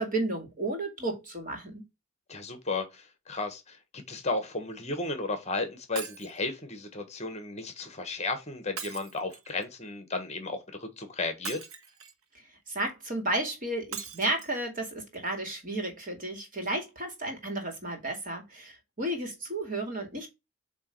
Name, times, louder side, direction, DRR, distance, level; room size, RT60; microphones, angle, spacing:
voice 1, 0.0-1.8 12.7-20.3, right 2 dB, 35° right, 2.1 m, -33 dB
voice 2, 2.3-11.6, left 3 dB, 30° left, 1.3 m, -34 dB
Shatter, 5.9-6.4 8.8-9.6 11.4-12.2 13.9-14.5 15.1-15.2 15.5-15.6, right 6 dB, 70° right, 1.0 m, -40 dB
8.2 x 3.0 x 4.6 m
head